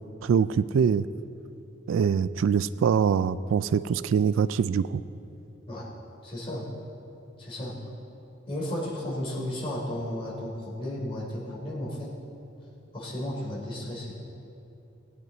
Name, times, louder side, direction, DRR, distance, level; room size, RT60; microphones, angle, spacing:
voice 1, 0.2-1.1 1.9-5.0, right 6 dB, 80° right, 15 dB, 0.3 m, -24 dB
voice 2, 6.2-6.7 7.4-7.8 8.5-12.1 12.9-14.1, left 1 dB, 25° left, -6 dB, 3.0 m, -34 dB
18.0 x 9.5 x 4.0 m, 2.9 s
head